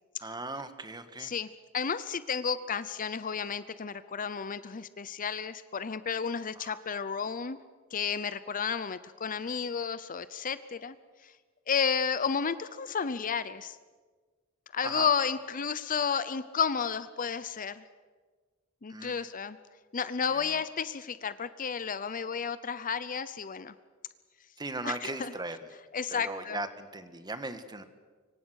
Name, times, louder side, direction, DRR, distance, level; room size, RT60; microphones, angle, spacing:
voice 1, 0.2-1.3 6.6-6.8 14.8-15.1 18.9-19.3 20.3-20.5 24.6-25.6 26.1-27.8, right 2 dB, 20° right, 10 dB, 1.5 m, -38 dB
voice 2, 1.7-7.6 7.9-10.9 11.2-11.3 11.7-13.8 14.7-17.8 18.8-19.6 19.9-23.7 24.8-25.3 25.9-26.6, left 6 dB, 40° left, 15 dB, 0.7 m, -32 dB
25.5 x 24.5 x 6.4 m, 1.4 s
head